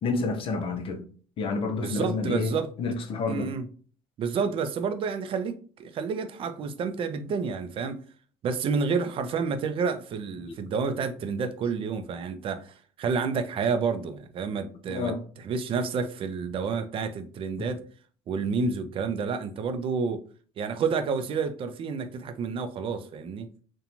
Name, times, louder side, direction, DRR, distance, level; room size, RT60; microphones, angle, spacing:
voice 1, 0.0-1.0 1.4-2.5 2.8-3.5 14.9-15.2, left 4 dB, 45° left, 0.6 m, -29 dB
voice 2, 1.8-2.7 3.3-3.7 4.2-8.0 8.4-17.8 18.3-20.2 20.6-23.5, right 5 dB, 45° right, 0.4 m, -29 dB
2.9 x 2.2 x 2.5 m
supercardioid pair, 90°, 12 cm